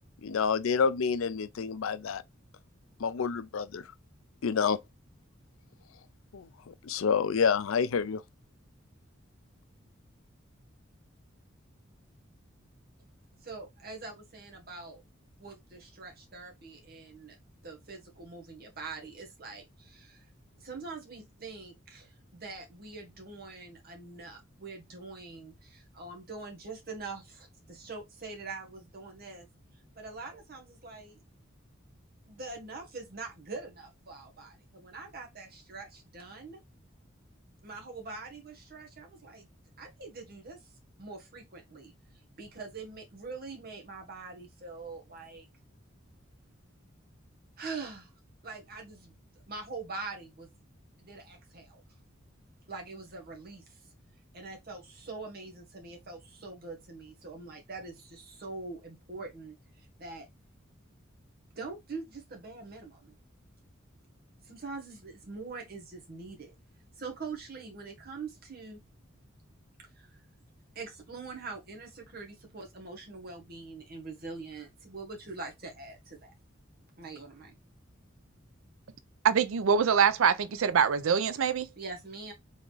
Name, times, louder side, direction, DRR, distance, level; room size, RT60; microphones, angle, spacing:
voice 1, 0.2-2.2 3.0-3.8 4.4-4.8 6.3-8.2, left 6 dB, 90° left, 0.5 m, -28 dB
voice 2, 13.4-15.0 15.4-17.3 17.6-20.2 20.6-29.5 29.9-31.2 32.3-36.6 37.6-39.5 39.8-40.7 41.0-41.9 42.4-45.5 47.6-48.1 48.4-50.5 51.0-51.8 52.7-53.8 54.3-60.3 61.5-63.1 64.4-66.5 67.0-68.8 69.9-70.2 70.7-76.3 77.0-77.5 81.8-82.3, right 3 dB, 50° right, 1.5 m, -44 dB
voice 3, 79.2-81.7, right 7 dB, 85° right, 0.5 m, -24 dB
4.1 x 3.6 x 3.3 m
head